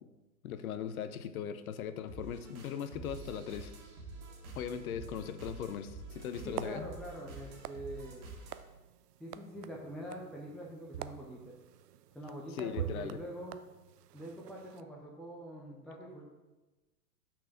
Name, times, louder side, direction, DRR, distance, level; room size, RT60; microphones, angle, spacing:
voice 1, 0.4-3.7 4.6-6.9 12.5-13.2, left 8 dB, 65° left, 11 dB, 0.8 m, -39 dB
sound 1, 2.1-8.6, right 3 dB, 45° right, 2.0 m, -48 dB
sound 2, 6.2-14.8, right 11 dB, 80° right, 0.6 m, -46 dB
voice 2, 6.4-8.2 9.2-11.5 12.1-13.6 14.1-16.2, right 1 dB, ahead, -4 dB, 0.4 m, -44 dB
6.1 x 4.4 x 5.9 m, 1.1 s
hypercardioid pair, 105°, 47 cm